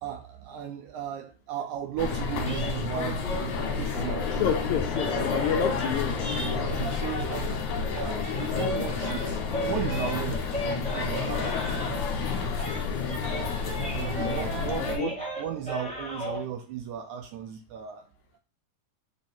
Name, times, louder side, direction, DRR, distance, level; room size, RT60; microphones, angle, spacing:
voice 1, 0.0-4.6 5.5-5.8 6.4-7.7 7.9-11.8 13.9-18.1, right 9 dB, 80° right, 1.7 m, -35 dB
sound 1, 2.0-15.0, left 5 dB, 60° left, 2.3 m, -30 dB
sound 2, 2.4-7.5 7.8-12.3 12.5-16.4, equal, 5° left, 0.6 m, -37 dB
voice 2, 4.4-6.4 15.0-15.1, left 8 dB, 80° left, 1.8 m, -28 dB
8.4 x 3.2 x 4.3 m
omnidirectional pair, 3.8 m